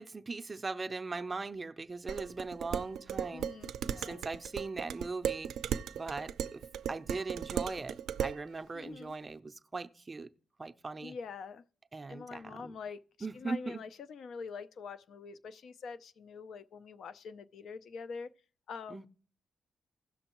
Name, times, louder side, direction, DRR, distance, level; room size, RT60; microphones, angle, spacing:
voice 1, 0.0-3.5 4.0-5.5 5.9-10.3 10.6-11.1 11.9-12.8 13.2-13.8 18.9-19.1, right 3 dB, 25° right, 0.5 m, -40 dB
Dishes pots and pans, 2.1-8.4, right 9 dB, 85° right, 0.4 m, -37 dB
voice 2, 3.3-4.3 8.7-9.1 11.0-11.6 12.1-13.0 13.3-18.3 18.7-19.1, left 5 dB, 70° left, 0.5 m, -45 dB
16.5 x 6.2 x 3.0 m
cardioid pair, 130°, 0 cm